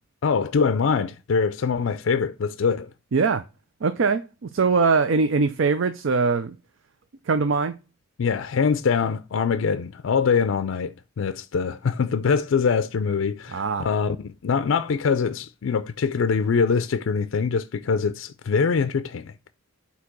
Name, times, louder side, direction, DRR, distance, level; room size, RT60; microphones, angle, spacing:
voice 1, 0.2-2.9 8.2-19.3, left 5 dB, 70° left, 0.4 m, -23 dB
voice 2, 3.1-3.4 3.8-6.6 7.3-7.7 13.5-13.9, right 4 dB, 70° right, 0.5 m, -22 dB
8.1 x 2.9 x 5.9 m
head